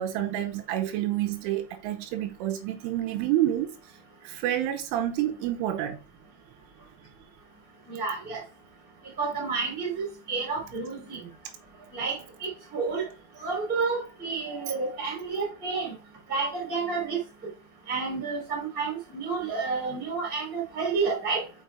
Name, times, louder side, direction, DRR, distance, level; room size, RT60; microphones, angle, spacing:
voice 1, 0.0-3.8 4.2-6.0, right 12 dB, 85° right, 3.2 m, -28 dB
voice 2, 7.9-8.4 9.2-11.2 11.9-13.1 13.4-15.9 16.3-17.2 17.9-21.4, right 4 dB, 15° right, 2.3 m, -30 dB
6.6 x 5.7 x 3.4 m
omnidirectional pair, 5.7 m